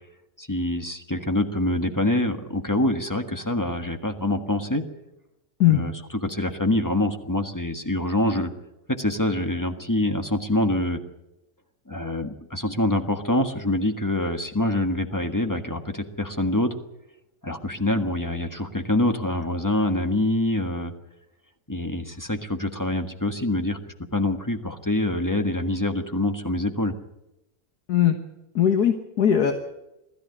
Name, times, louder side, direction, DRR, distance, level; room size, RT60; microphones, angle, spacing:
voice 1, 0.4-4.8 5.7-8.5 8.9-11.0 11.9-16.7 17.4-20.9 21.7-23.8 24.1-26.9, left 1 dB, 10° left, 6 dB, 1.4 m, -25 dB
voice 2, 28.6-29.5, left 10 dB, 65° left, 5 dB, 1.8 m, -19 dB
20.5 x 14.0 x 9.7 m, 0.94 s
omnidirectional pair, 1.8 m